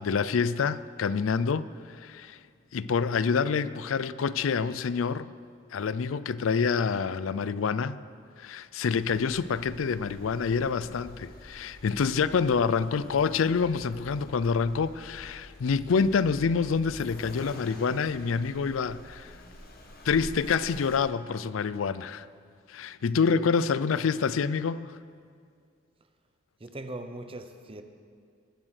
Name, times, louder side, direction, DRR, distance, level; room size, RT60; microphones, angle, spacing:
voice 1, 0.0-2.4 2.7-5.3 5.7-8.0 8.4-19.3 20.0-22.3 22.7-24.9, left 5 dB, 90° left, 0.4 m, -27 dB
Accelerating revving vroom, 9.0-21.0, left 1 dB, 50° left, 1.5 m, -47 dB
voice 2, 26.6-27.8, right 2 dB, 30° right, 0.8 m, -40 dB
20.0 x 7.5 x 6.4 m
head